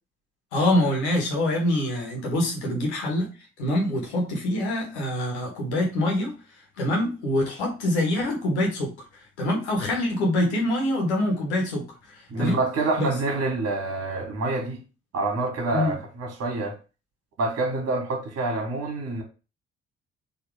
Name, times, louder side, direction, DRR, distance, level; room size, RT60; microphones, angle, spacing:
voice 1, 0.5-3.3 3.6-6.3 6.8-8.9 9.4-12.6 13.0-13.1 15.7-16.0, left 1 dB, 80° left, 1.3 m, -25 dB
voice 2, 12.3-14.8 15.1-16.7 17.4-19.2, right 2 dB, 50° right, 1.7 m, -27 dB
4.0 x 2.8 x 4.7 m
figure-of-eight pair, 45°, 33 cm